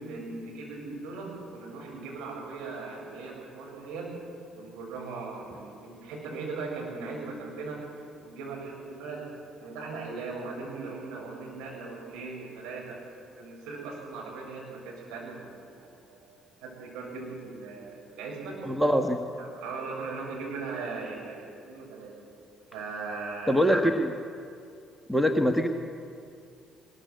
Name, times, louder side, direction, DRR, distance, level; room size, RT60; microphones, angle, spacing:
voice 1, 0.0-4.1 4.5-7.8 8.2-9.3 9.6-13.0 13.3-18.7 19.4-22.1 22.7-23.6, right 3 dB, 60° right, -2 dB, 7.2 m, -39 dB
voice 2, 18.6-19.2 23.5-24.1 25.1-25.7, equal, ahead, 5 dB, 1.5 m, -23 dB
21.0 x 20.5 x 8.1 m, 2.4 s
figure-of-eight pair, 50°, 0 cm